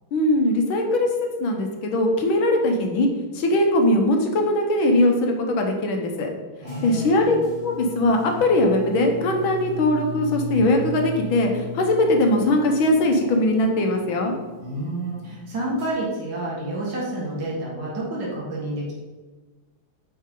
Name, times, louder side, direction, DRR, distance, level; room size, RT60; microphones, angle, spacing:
voice 1, 0.1-1.1 1.4-3.1 3.3-6.3 6.8-7.4 7.6-14.3, left 1 dB, 75° left, 3 dB, 1.8 m, -20 dB
sound 1, 6.6-15.9, equal, 55° left, 2.4 m, -36 dB
voice 2, 6.6-7.3 14.6-18.9, right 1 dB, 60° right, -4 dB, 2.5 m, -29 dB
9.0 x 5.6 x 3.8 m, 1.3 s
omnidirectional pair, 2.2 m